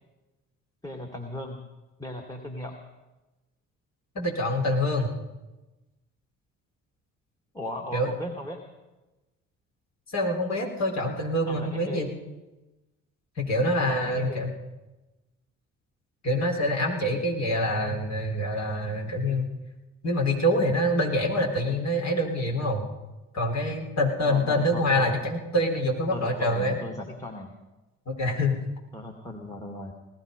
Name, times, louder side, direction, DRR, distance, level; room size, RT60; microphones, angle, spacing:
voice 1, 0.8-1.6 2.0-2.7 7.5-8.6 11.5-12.1 13.9-14.5 24.2-25.2 26.1-27.5 28.9-29.9, left 1 dB, 10° left, 3 dB, 2.3 m, -37 dB
voice 2, 4.1-5.1 7.9-8.1 10.1-12.1 13.4-14.5 16.2-19.5 20.0-22.9 23.3-26.8 28.1-28.6, left 1 dB, 45° left, 0 dB, 3.9 m, -26 dB
18.5 x 14.0 x 5.3 m, 1.1 s
hypercardioid pair, 50°, 38 cm